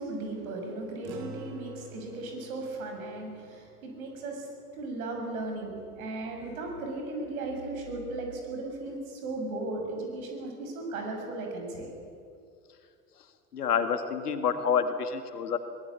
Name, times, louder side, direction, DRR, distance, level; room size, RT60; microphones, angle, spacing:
voice 1, 0.0-11.9, right 2 dB, 60° right, 3 dB, 6.9 m, -36 dB
sound 1, 1.0-5.7, right 2 dB, 45° right, 3.3 m, -50 dB
voice 2, 13.5-15.6, left 7 dB, 75° left, 9 dB, 2.0 m, -28 dB
24.0 x 18.5 x 8.5 m, 2.3 s
figure-of-eight pair, 85°, 47 cm